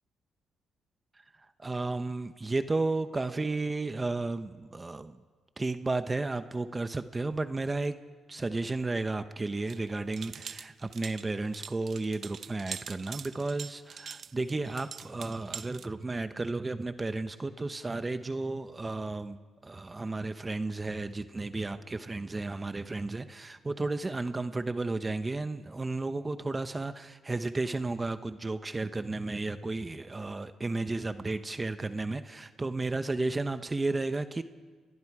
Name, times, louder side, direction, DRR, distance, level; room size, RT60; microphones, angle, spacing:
voice 1, 1.2-5.2 5.6-8.0 8.3-19.4 19.6-34.4, right 3 dB, 20° right, 10 dB, 0.9 m, -33 dB
sound 1, 9.7-15.9, right 7 dB, 50° right, 0.7 m, -43 dB
29.0 x 21.0 x 4.8 m, 1.5 s
cardioid pair, 90°, 0 cm